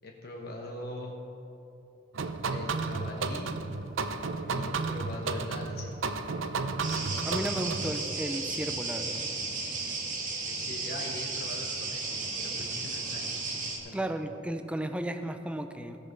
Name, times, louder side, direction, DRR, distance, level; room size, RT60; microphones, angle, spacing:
voice 1, 0.0-1.2 2.5-3.6 4.5-5.9 10.5-12.1 12.4-13.4 13.8-14.1, left 1 dB, 50° left, 0 dB, 1.0 m, -41 dB
sound 1, 2.1-8.0, right 4 dB, 85° right, 0.6 m, -33 dB
sound 2, 6.8-13.8, right 3 dB, 45° right, 1.6 m, -34 dB
voice 2, 7.2-9.2 13.9-16.0, right 1 dB, 5° right, 8 dB, 0.5 m, -34 dB
16.5 x 6.5 x 5.2 m, 2.9 s
head